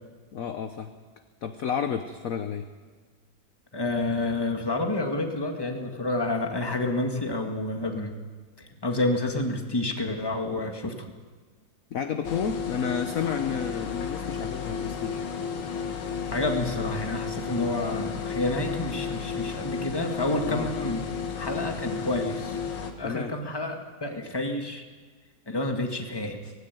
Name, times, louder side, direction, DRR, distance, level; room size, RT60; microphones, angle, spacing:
voice 1, 0.3-0.9 1.4-2.7 11.9-15.2 20.4-20.7 23.0-23.4 26.4-26.5, left 7 dB, 55° left, 8 dB, 1.1 m, -31 dB
voice 2, 3.7-8.1 8.8-10.9 16.3-21.0 21.3-22.6 23.0-24.8 25.5-26.4, left 2 dB, 15° left, 3 dB, 1.7 m, -29 dB
sound 1, 12.2-22.9, left 6 dB, 90° left, 2.4 m, -33 dB
18.5 x 16.5 x 9.3 m, 1.5 s
omnidirectional pair, 2.1 m